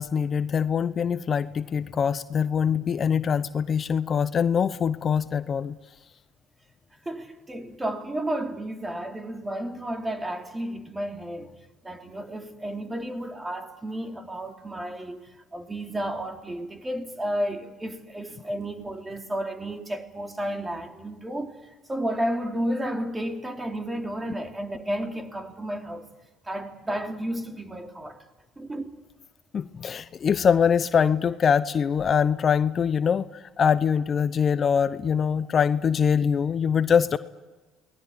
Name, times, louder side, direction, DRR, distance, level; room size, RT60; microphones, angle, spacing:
voice 1, 0.0-5.8 29.5-37.2, left 7 dB, 45° left, 0.8 m, -23 dB
voice 2, 7.0-11.5 11.8-26.1 26.4-28.2 28.6-29.0, right 1 dB, 15° right, 3.3 m, -32 dB
29.0 x 20.0 x 9.7 m
hypercardioid pair, 65°, 0 cm